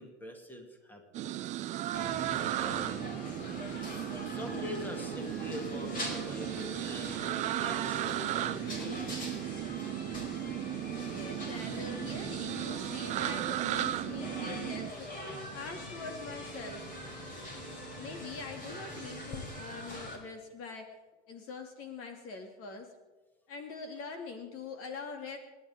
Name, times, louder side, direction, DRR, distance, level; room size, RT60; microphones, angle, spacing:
voice 1, 0.0-1.4 2.5-3.0 4.2-9.1 9.6-9.7, left 1 dB, 5° left, 3 dB, 2.9 m, -44 dB
sound 1, 1.1-14.9, right 14 dB, 20° right, 0.4 m, -36 dB
sound 2, 1.9-20.2, equal, 25° left, 4.9 m, -42 dB
voice 2, 11.0-15.1 15.5-16.8 18.0-21.0 21.3-22.9 23.5-25.4, left 4 dB, 40° left, 5 dB, 2.6 m, -43 dB
29.0 x 11.0 x 3.7 m, 1.3 s
hypercardioid pair, 115°, 35 cm